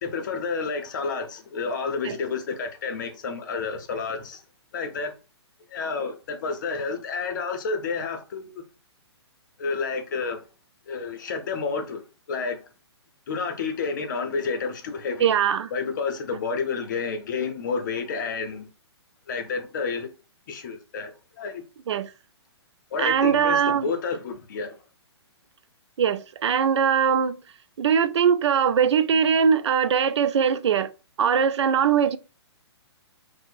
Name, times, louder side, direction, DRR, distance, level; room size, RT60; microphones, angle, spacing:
voice 1, 0.0-4.4 4.7-5.1 5.7-8.6 9.6-10.4 10.9-12.0 12.3-12.6 13.3-15.3 15.7-18.7 19.3-20.1 20.5-21.1 21.4-21.6 22.9-24.7, left 5 dB, 45° left, 0.6 m, -30 dB
voice 2, 15.2-15.7 21.9-22.1 23.0-23.9 26.0-27.3 27.8-30.9 31.2-32.2, right 7 dB, 80° right, 0.4 m, -21 dB
4.4 x 2.1 x 2.5 m
hypercardioid pair, 165°, 14 cm